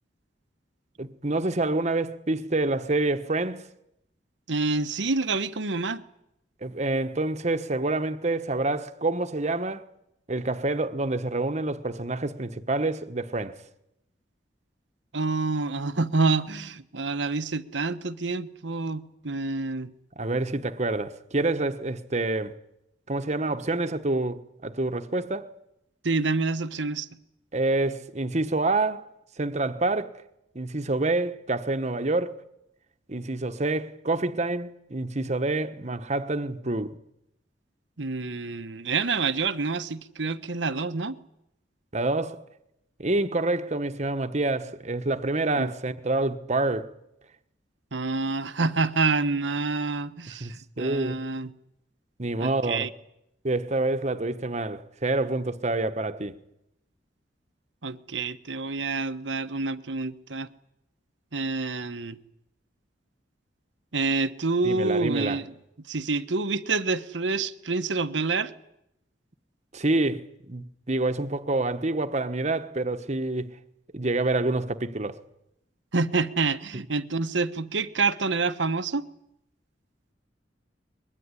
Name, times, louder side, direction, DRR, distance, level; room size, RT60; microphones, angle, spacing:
voice 1, 1.0-3.6 6.6-9.8 10.3-13.6 20.2-22.6 23.1-25.5 27.5-29.1 29.4-30.1 30.5-32.4 33.1-37.0 41.9-42.4 43.0-46.9 50.3-51.2 52.2-52.9 53.4-56.4 64.6-65.4 69.7-73.5 73.9-75.2, right 2 dB, 40° right, 1.2 m, -27 dB
voice 2, 4.5-6.0 15.1-19.9 26.0-27.1 38.0-41.2 45.6-45.7 47.9-51.5 52.4-52.9 57.8-60.5 61.3-62.2 63.9-65.5 65.9-68.5 75.9-79.0, right 3 dB, 90° right, 1.2 m, -27 dB
22.5 x 21.5 x 9.8 m
head